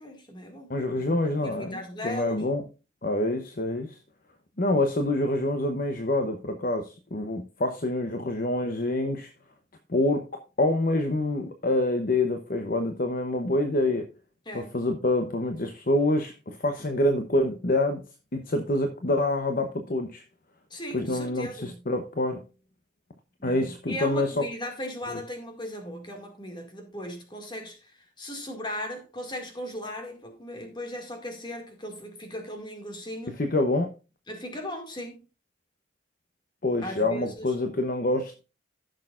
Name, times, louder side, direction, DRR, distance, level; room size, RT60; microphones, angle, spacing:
voice 1, 0.0-0.7 1.1-2.4 14.5-14.7 20.7-21.8 23.4-33.4 34.3-35.2 36.8-37.5, left 1 dB, 25° left, 2.1 m, -38 dB
voice 2, 0.7-2.6 3.0-4.0 4.6-9.3 9.9-14.1 14.5-18.0 18.3-20.2 20.9-22.4 23.4-24.3 25.1-25.2 33.3-33.9 36.6-38.4, left 1 dB, 45° left, 0.8 m, -26 dB
15.0 x 6.5 x 2.5 m
head